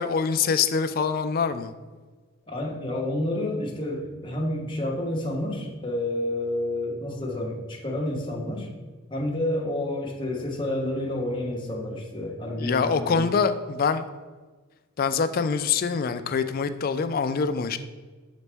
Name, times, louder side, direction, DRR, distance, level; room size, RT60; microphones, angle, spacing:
voice 1, 0.0-1.7 12.6-14.1 15.0-17.8, left 5 dB, 45° left, 10 dB, 0.3 m, -25 dB
voice 2, 2.5-8.7 9.1-13.2, left 1 dB, 25° left, -1 dB, 1.0 m, -29 dB
7.0 x 4.1 x 3.4 m, 1.4 s
head